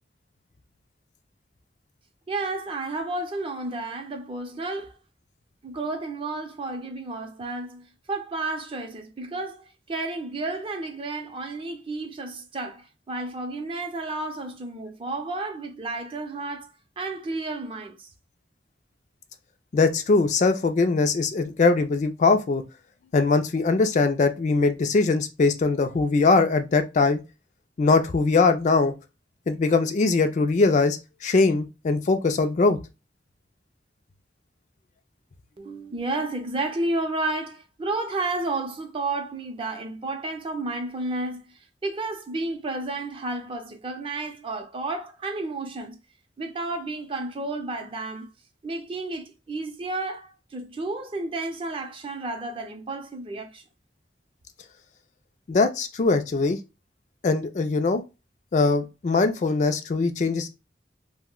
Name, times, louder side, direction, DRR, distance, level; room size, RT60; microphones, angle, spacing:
voice 1, 2.3-5.0 5.6-18.1 35.6-46.0 46.4-48.3 48.6-53.6, right 2 dB, 30° right, 0.5 m, -32 dB
voice 2, 19.7-22.6 23.1-27.2 27.8-28.9 29.5-32.8 55.5-56.6 57.2-58.0 58.5-60.5, left 3 dB, 45° left, 0.3 m, -21 dB
2.6 x 2.1 x 3.6 m
head